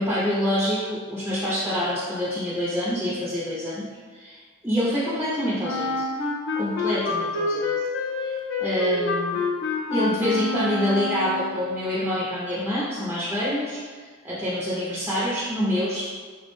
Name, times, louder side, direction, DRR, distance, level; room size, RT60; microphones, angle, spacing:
voice 1, 0.0-6.0 6.6-7.8 8.2-9.4 9.9-16.1, equal, 10° right, -9 dB, 0.4 m, -26 dB
Wind instrument woodwind instrument, 5.6-11.7, left 3 dB, 55° left, 0.4 m, -27 dB
3.3 x 2.1 x 3.0 m, 1.5 s
head